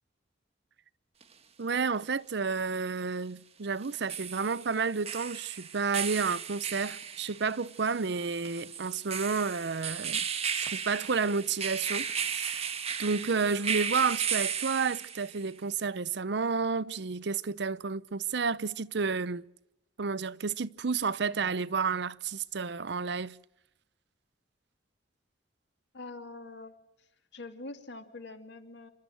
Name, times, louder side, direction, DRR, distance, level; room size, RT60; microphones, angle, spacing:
sound 1, 1.2-1.3 3.8-15.4, right 7 dB, 35° right, 1.3 m, -35 dB
voice 1, 1.6-10.3 10.5-12.7 13.0-19.5 20.0-23.4, right 5 dB, 65° right, 0.7 m, -31 dB
voice 2, 25.9-26.7 27.3-28.9, left 2 dB, 65° left, 2.5 m, -44 dB
27.5 x 13.0 x 7.9 m
head